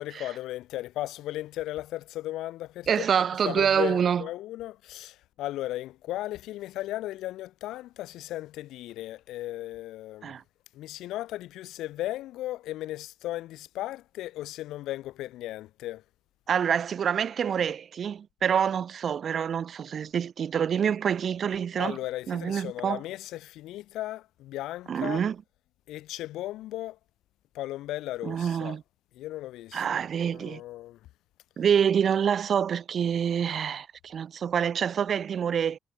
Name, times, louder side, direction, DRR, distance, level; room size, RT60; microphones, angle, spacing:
voice 1, 0.0-3.1 3.4-10.4 10.7-16.0 21.8-25.2 25.9-27.0 27.5-28.8 29.1-31.0, left 15 dB, 90° left, 0.4 m, -36 dB
voice 2, 2.9-4.2 10.2-10.4 16.5-22.0 22.3-23.0 24.9-25.3 28.2-28.8 29.7-30.6 31.6-35.8, right 8 dB, 55° right, 0.7 m, -26 dB
cardioid pair, 90°, 0 cm